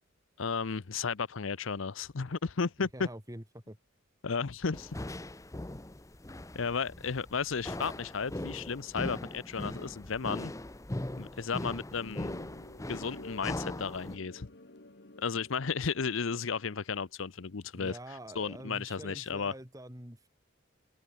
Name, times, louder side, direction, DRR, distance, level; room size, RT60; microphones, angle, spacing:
voice 1, 0.4-3.1 4.2-4.9 6.5-10.5 11.1-12.3 12.9-14.5 15.2-18.0 18.4-19.5, left 5 dB, 75° left, 0.7 m, -34 dB
voice 2, 2.9-3.8 17.7-20.3, right 1 dB, 15° right, 4.4 m, -45 dB
sound 1, 4.7-14.2, left 1 dB, 15° left, 0.8 m, -40 dB
sound 2, 12.0-17.1, left 1 dB, 55° left, 2.2 m, -51 dB
head